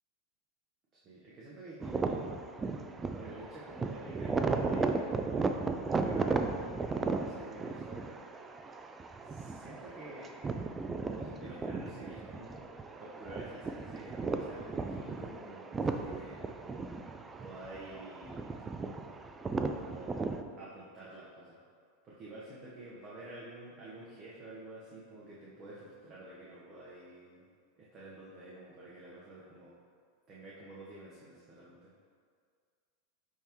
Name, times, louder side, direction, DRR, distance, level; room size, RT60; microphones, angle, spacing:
voice 1, 0.9-2.2 3.1-5.2 5.8-6.4 7.1-8.2 9.2-10.3 11.0-12.6 13.0-16.4 17.4-18.5 19.8-20.2 20.6-21.6 22.0-27.4 27.8-29.7 30.3-31.9, right 1 dB, 35° right, -7 dB, 1.2 m, -49 dB
sound 1, 1.8-20.4, right 4 dB, 20° right, 0.4 m, -36 dB
9.6 x 3.5 x 3.1 m, 2.1 s
hypercardioid pair, 120°, 0 cm